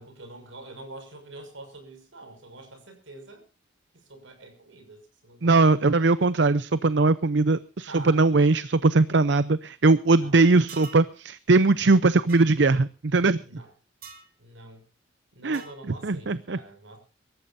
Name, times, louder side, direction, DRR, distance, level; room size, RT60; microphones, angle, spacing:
voice 1, 0.0-3.4 3.9-5.6 7.9-8.5 10.2-10.3 11.5-11.7 13.4-13.7 14.4-14.8 15.3-17.0, right 2 dB, 80° right, 5 dB, 6.3 m, -45 dB
voice 2, 5.4-13.4 15.4-15.6 16.0-16.6, right 3 dB, 65° right, 16 dB, 0.6 m, -20 dB
sound 1, 10.7-11.1 12.3-12.5 14.0-14.3 15.5-15.8, right 5 dB, 50° right, 2.5 m, -44 dB
24.5 x 14.0 x 2.7 m, 0.33 s
head